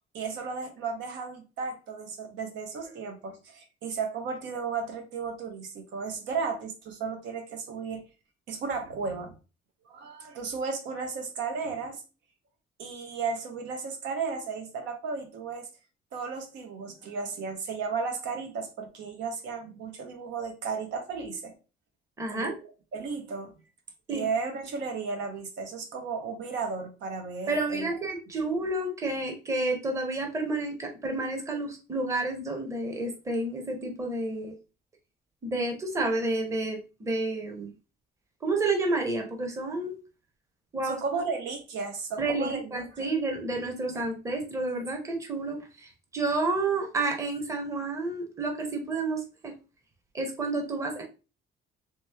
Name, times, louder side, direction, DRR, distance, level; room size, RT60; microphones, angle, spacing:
voice 1, 0.1-8.1 8.5-9.3 9.9-12.0 12.8-15.7 16.1-21.5 22.3-23.5 24.1-27.9 40.8-43.1 43.9-44.1, right 5 dB, 80° right, 0.9 m, -34 dB
voice 2, 22.2-22.5 24.1-24.2 27.5-34.5 35.4-37.7 38.4-39.9 40.7-41.2 42.2-49.5 50.1-51.0, right 2 dB, 15° right, 0.8 m, -30 dB
3.2 x 3.0 x 3.3 m
cardioid pair, 160°, 19 cm